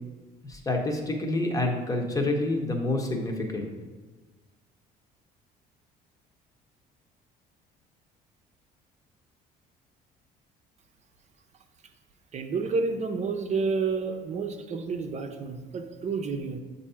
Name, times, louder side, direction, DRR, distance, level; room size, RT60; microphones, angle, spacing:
voice 1, 0.5-3.7, left 2 dB, 20° left, 2 dB, 0.9 m, -28 dB
voice 2, 12.3-16.6, right 4 dB, 40° right, 5 dB, 0.7 m, -30 dB
7.2 x 2.7 x 5.6 m, 1.3 s
cardioid pair, 110°, 17 cm